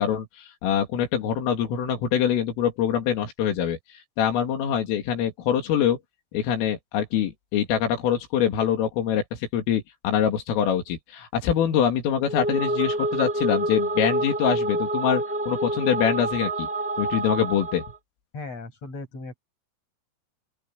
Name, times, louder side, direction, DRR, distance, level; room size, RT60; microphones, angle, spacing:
voice 1, 0.0-3.8 4.2-6.0 6.3-16.7 17.0-17.8, left 9 dB, 85° left, 5.5 m, -24 dB
sound 1, 12.2-18.0, right 1 dB, 10° left, 6.8 m, -27 dB
voice 2, 18.3-19.4, left 3 dB, 30° left, 7.7 m, -37 dB
open air
omnidirectional pair, 5.7 m